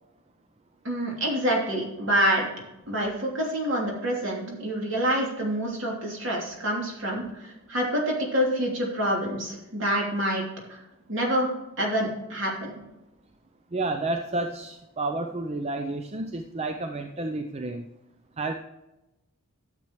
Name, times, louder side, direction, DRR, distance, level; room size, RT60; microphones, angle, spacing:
voice 1, 0.8-2.5 2.9-10.4 10.7-10.8 11.1-12.7, equal, 55° right, -2 dB, 3.0 m, -27 dB
voice 2, 13.7-17.9 18.4-18.5, right 2 dB, 30° right, 6 dB, 0.5 m, -30 dB
12.0 x 7.6 x 3.1 m, 0.98 s
head